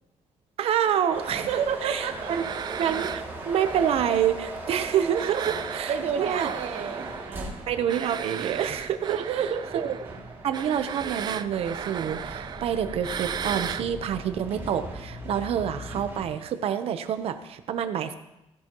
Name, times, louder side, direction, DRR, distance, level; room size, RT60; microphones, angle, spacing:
voice 1, 0.6-2.4 2.8-6.5 7.7-9.4 9.7-10.0 10.4-18.1, right 9 dB, 65° right, 10 dB, 0.8 m, -27 dB
sound 1, 0.8-4.8 5.1-13.9, right 8 dB, 40° right, 0.4 m, -36 dB
sound 2, 1.1-16.3, right 2 dB, 20° right, 2.4 m, -39 dB
voice 2, 1.5-2.3 5.9-7.6 9.1-9.8, right 8 dB, 90° right, 7 dB, 1.1 m, -30 dB
sound 3, 11.2-16.0, left 2 dB, 60° left, 4.2 m, -42 dB
16.5 x 10.5 x 3.0 m, 0.88 s
cardioid pair, 170°, 11 cm